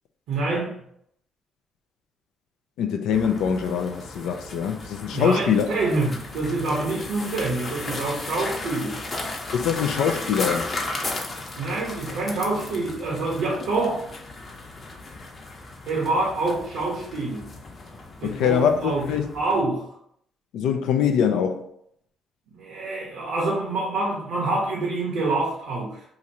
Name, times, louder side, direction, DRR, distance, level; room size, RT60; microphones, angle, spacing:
voice 1, 0.3-0.7 5.1-9.0 11.6-14.0 15.9-17.5 18.2-19.1 19.3-19.9 22.5-26.0, right 2 dB, 85° right, 0.9 m, -26 dB
voice 2, 2.8-5.7 9.5-10.7 18.2-19.3 20.5-21.6, left 7 dB, 90° left, 0.3 m, -23 dB
sound 1, 3.1-19.6, left 2 dB, 40° left, 0.8 m, -35 dB
2.9 x 2.5 x 4.1 m
cardioid pair, 90°, 0 cm